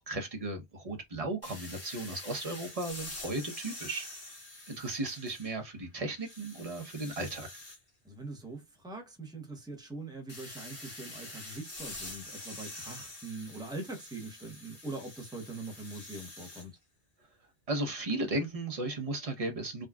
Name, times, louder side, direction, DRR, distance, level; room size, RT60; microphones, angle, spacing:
voice 1, 0.0-4.4 4.7-7.5 17.7-19.9, right 2 dB, 35° right, 0.8 m, -35 dB
sound 1, 1.4-5.7 6.1-7.8 10.3-16.7, left 2 dB, 50° left, 1.7 m, -46 dB
voice 2, 8.0-16.8, right 2 dB, 5° right, 0.6 m, -42 dB
3.7 x 2.3 x 2.3 m
omnidirectional pair, 1.2 m